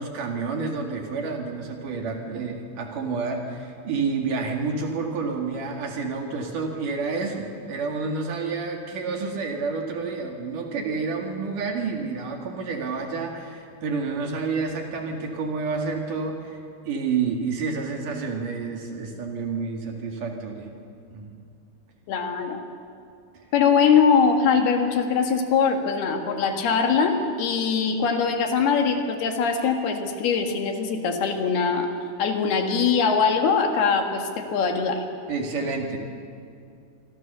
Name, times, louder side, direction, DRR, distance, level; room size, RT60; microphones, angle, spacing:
voice 1, 0.0-16.6 16.9-20.7 21.1-21.3 35.3-36.0, right 4 dB, 60° right, 2 dB, 3.6 m, -29 dB
voice 2, 22.1-22.6 23.5-31.9 32.2-35.0, left 6 dB, 75° left, 4 dB, 3.8 m, -22 dB
27.0 x 24.0 x 6.9 m, 2.4 s
omnidirectional pair, 4.5 m